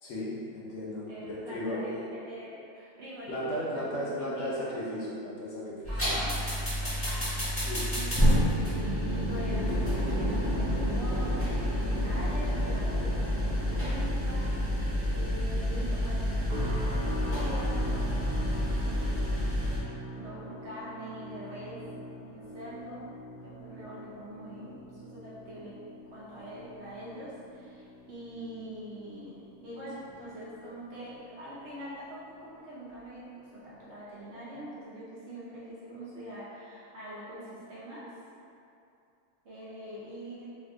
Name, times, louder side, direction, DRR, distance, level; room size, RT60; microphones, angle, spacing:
voice 1, 0.0-2.0 3.3-5.9 7.6-8.0, equal, 65° left, -6 dB, 0.8 m, -35 dB
voice 2, 1.1-4.7 5.9-6.3 7.9-9.7 10.1-19.2 19.8-21.8 22.2-23.1 23.4-25.8 26.1-38.2 39.4-40.5, equal, 60° right, -9 dB, 0.8 m, -44 dB
sound 1, 5.8-19.8, equal, 15° left, 0.6 m, -28 dB
sound 2, 16.5-31.7 32.0-32.4 32.9-33.1, right 1 dB, 90° right, 1.1 m, -43 dB
2.5 x 2.5 x 3.4 m, 2.6 s
omnidirectional pair, 1.5 m